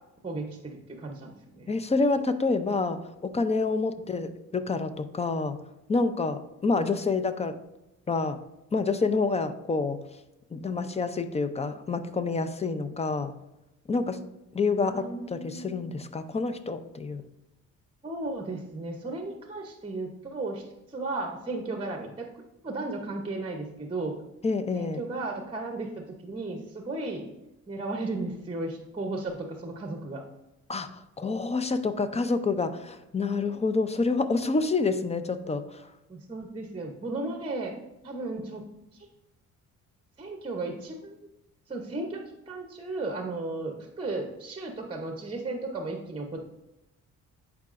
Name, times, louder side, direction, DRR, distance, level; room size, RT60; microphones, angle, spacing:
voice 1, 0.2-1.7 14.8-15.9 18.0-20.6 20.9-24.2 24.7-27.2 27.7-30.2 36.1-37.7 38.0-38.6 38.9-39.1 40.2-41.2 41.7-46.4, right 2 dB, 20° right, 3 dB, 0.9 m, -35 dB
voice 2, 1.7-5.6 5.9-7.6 8.1-8.4 8.7-10.0 10.5-13.3 13.9-14.2 14.5-17.2 24.4-25.0 30.7-35.9, left 3 dB, 20° left, 11 dB, 0.6 m, -28 dB
10.5 x 4.7 x 2.6 m, 0.93 s
cardioid pair, 90°, 30 cm